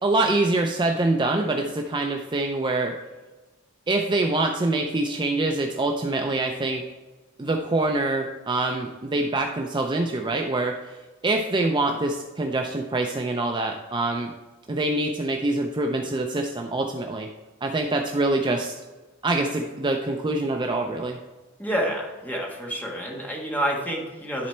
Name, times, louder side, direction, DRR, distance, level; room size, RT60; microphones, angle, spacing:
voice 1, 0.0-2.9 3.9-6.8 7.4-11.0 11.2-14.3 14.7-17.3 17.6-18.8 19.2-21.2, right 2 dB, 20° right, 3 dB, 0.4 m, -25 dB
voice 2, 21.6-24.5, equal, 10° left, -2 dB, 1.4 m, -28 dB
10.5 x 4.1 x 4.3 m, 1.2 s
head